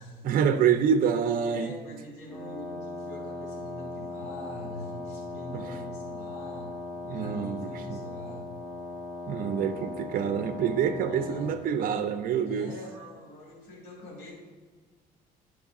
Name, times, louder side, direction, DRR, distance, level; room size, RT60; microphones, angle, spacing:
voice 1, 0.2-1.7 5.5-5.8 7.0-8.0 9.3-12.7, right 7 dB, 55° right, 9 dB, 0.6 m, -27 dB
voice 2, 1.4-6.8 7.1-8.6 11.0-11.5 12.4-14.3, left 1 dB, 75° left, -3 dB, 2.3 m, -44 dB
Wind instrument woodwind instrument, 2.3-11.6, left 2 dB, ahead, 1.7 m, -39 dB
11.5 x 4.7 x 3.6 m, 1.5 s
cardioid pair, 110°, 17 cm